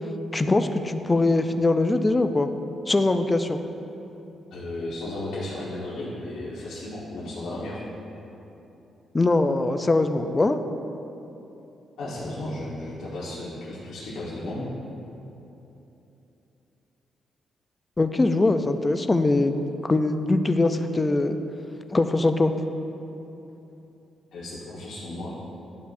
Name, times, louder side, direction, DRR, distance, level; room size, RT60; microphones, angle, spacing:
voice 1, 0.3-2.5 2.9-3.6 9.1-10.6 18.0-19.6 19.8-21.4 21.9-22.5, left 2 dB, 20° left, 8 dB, 0.3 m, -22 dB
voice 2, 4.5-7.8 12.0-14.7 24.3-25.3, left 1 dB, 85° left, -9 dB, 1.3 m, -34 dB
12.0 x 5.5 x 2.6 m, 2.9 s
cardioid pair, 130°, 0 cm